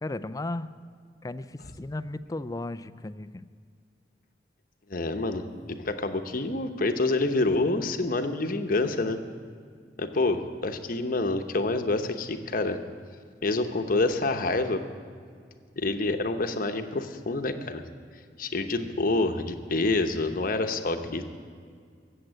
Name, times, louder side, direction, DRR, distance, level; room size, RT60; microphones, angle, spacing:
voice 1, 0.0-0.7 1.2-3.5, left 2 dB, 20° left, 14 dB, 0.4 m, -35 dB
voice 2, 4.9-9.2 10.0-12.8 13.4-14.8 15.8-17.8 18.4-21.3, left 2 dB, 55° left, 7 dB, 0.9 m, -27 dB
14.5 x 7.9 x 8.9 m, 2.1 s
head